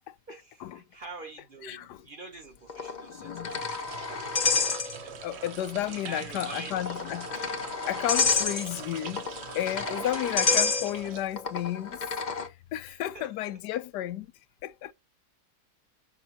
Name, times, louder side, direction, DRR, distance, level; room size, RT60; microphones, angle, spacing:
voice 1, 0.3-3.8 4.4-5.4 5.8-7.1 10.1-10.3 12.9-13.6, right 2 dB, 35° right, 1.2 m, -46 dB
voice 2, 1.6-2.0 3.1-3.6 5.2-7.5 7.9-9.3 9.5-12.0 12.7-14.3 14.6-14.9, left 13 dB, 85° left, 1.2 m, -32 dB
sound 1, 2.7-5.3 5.6-5.7 6.6-12.5, left 4 dB, 35° left, 0.7 m, -30 dB
sound 2, 3.3-11.8, right 8 dB, 55° right, 0.7 m, -43 dB
6.1 x 5.7 x 4.0 m
omnidirectional pair, 1.7 m